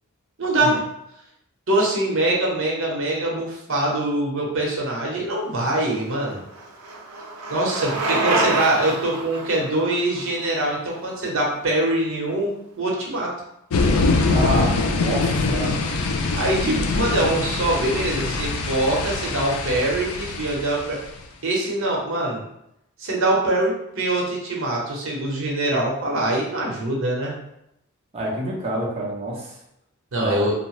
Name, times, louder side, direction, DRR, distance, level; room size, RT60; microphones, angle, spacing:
voice 1, 0.4-0.8 1.7-6.4 7.5-12.5 12.8-13.3 16.3-21.0 21.4-22.4 23.0-27.3 30.1-30.5, right 1 dB, 65° right, -2 dB, 0.8 m, -23 dB
Bicycle, 5.7-11.7, right 2 dB, 85° right, 0.5 m, -28 dB
sound 1, 13.7-21.2, left 3 dB, 80° left, 0.4 m, -23 dB
voice 2, 14.3-15.8 28.1-29.5 30.2-30.5, right 1 dB, 30° right, -4 dB, 0.7 m, -27 dB
2.7 x 2.1 x 3.1 m, 0.79 s
head